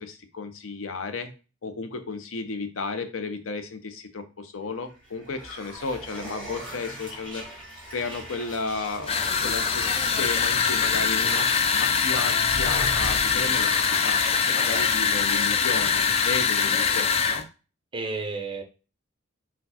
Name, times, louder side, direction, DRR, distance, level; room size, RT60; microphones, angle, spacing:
voice 1, 0.0-1.3 1.6-7.4 7.9-11.5 11.8-17.4, left 4 dB, 90° left, 8 dB, 0.7 m, -33 dB
sound 1, 4.8-14.8, right 1 dB, 5° left, 1.9 m, -39 dB
sound 2, 9.1-17.4, left 6 dB, 30° left, 0.4 m, -23 dB
voice 2, 17.9-18.6, right 3 dB, 25° right, 5 dB, 0.8 m, -33 dB
4.4 x 2.3 x 4.1 m, 0.33 s
head